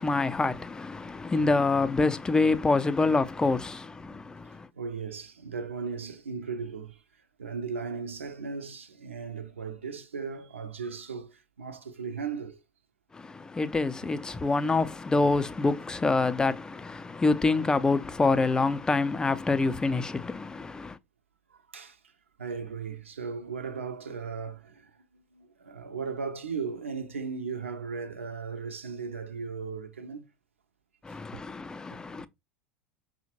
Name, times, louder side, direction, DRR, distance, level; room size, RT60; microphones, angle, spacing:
voice 1, 0.0-4.7 13.1-21.0 31.0-32.3, left 3 dB, 10° left, 0.3 m, -26 dB
voice 2, 4.7-7.0 7.4-12.6 21.5-22.0 22.4-30.2 31.1-31.4, right 5 dB, 80° right, 0.5 m, -37 dB
5.6 x 2.1 x 2.8 m
figure-of-eight pair, 80°, 7 cm